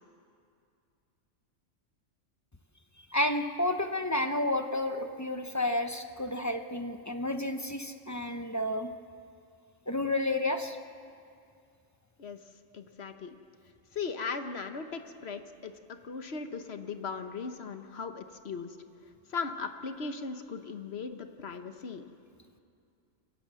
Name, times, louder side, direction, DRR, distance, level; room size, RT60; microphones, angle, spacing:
voice 1, 3.1-8.9 9.9-10.8, left 1 dB, 15° left, 7 dB, 0.7 m, -31 dB
voice 2, 12.7-13.4 13.9-15.7 16.0-18.8 19.3-22.1, left 5 dB, 55° left, 8 dB, 1.3 m, -38 dB
27.5 x 15.0 x 7.6 m, 2.4 s
omnidirectional pair, 1.4 m